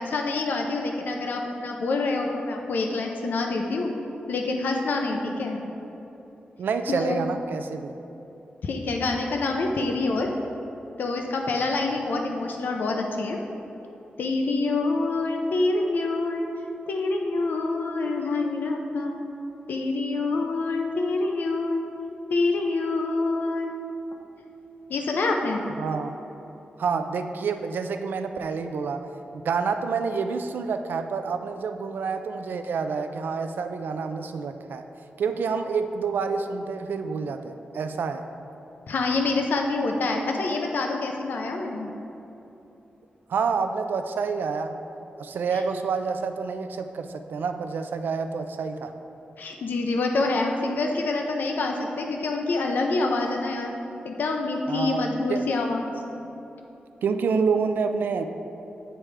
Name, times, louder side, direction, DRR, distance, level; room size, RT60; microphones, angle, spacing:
voice 1, 0.0-3.9 4.3-5.6 6.9-7.2 8.6-10.3 11.0-13.4 14.2-16.5 16.9-19.2 19.7-21.8 22.3-23.7 24.9-25.6 38.9-41.9 45.5-45.6 49.4-53.7 54.0-55.9, left 3 dB, 70° left, 2 dB, 0.5 m, -26 dB
voice 2, 6.6-7.9 25.8-26.2 26.8-29.1 29.4-34.8 35.2-38.3 43.3-44.8 45.2-48.9 54.7-55.5 57.0-58.2, right 5 dB, 85° right, 7 dB, 0.3 m, -28 dB
8.8 x 3.3 x 4.8 m, 3.0 s
wide cardioid pair, 145°, 3 cm